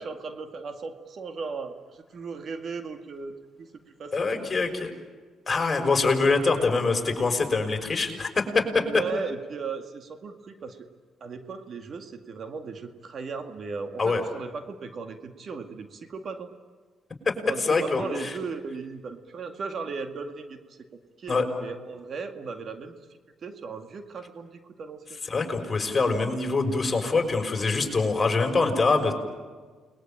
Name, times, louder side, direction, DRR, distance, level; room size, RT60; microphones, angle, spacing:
voice 1, 0.0-3.7 4.0-4.5 8.7-10.9 11.2-16.5 17.5-20.8 21.2-23.0 23.4-25.5, right 4 dB, 55° right, 7 dB, 2.1 m, -37 dB
voice 2, 4.1-4.9 5.5-8.8 14.0-14.2 17.2-17.4 17.7-18.3 21.3-21.5 25.3-29.1, left 3 dB, 30° left, 4 dB, 5.9 m, -24 dB
29.5 x 21.5 x 8.9 m, 1.5 s
cardioid pair, 90°, 0 cm